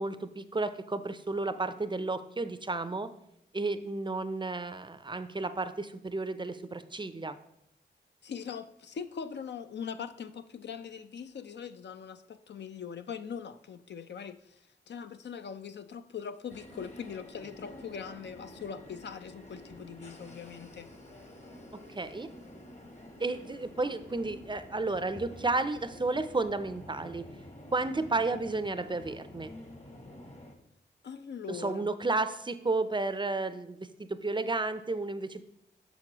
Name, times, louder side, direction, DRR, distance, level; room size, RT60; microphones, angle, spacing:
voice 1, 0.0-3.1 3.5-7.4 21.9-22.3 23.2-27.3 27.7-29.5 31.5-35.4, right 3 dB, 25° right, 11 dB, 0.5 m, -32 dB
voice 2, 8.2-20.9 31.0-31.9, left 7 dB, 65° left, 10 dB, 0.4 m, -41 dB
sound 1, 16.5-30.5, left 1 dB, 35° left, 1.1 m, -49 dB
6.0 x 6.0 x 2.9 m, 0.77 s
cardioid pair, 45°, 20 cm